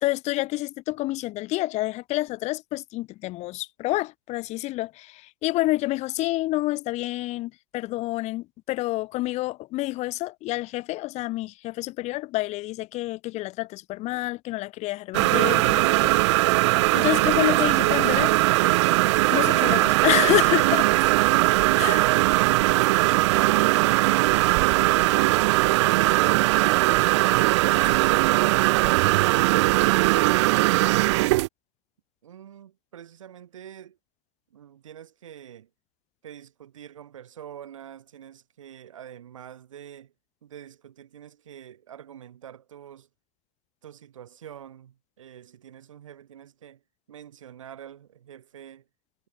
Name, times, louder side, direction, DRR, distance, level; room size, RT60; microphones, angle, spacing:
voice 1, 0.0-16.1 16.6-16.7 16.9-18.3 19.3-20.9 21.7-22.1, left 18 dB, 45° left, 1.6 m, -28 dB
sound 1, 15.1-31.5, right 20 dB, 65° right, 0.5 m, -20 dB
voice 2, 32.2-34.0 34.5-35.7 36.2-40.1 40.4-43.1 43.8-46.8 47.1-48.9, right 10 dB, 85° right, 5.4 m, -46 dB
hypercardioid pair, 105°, 16 cm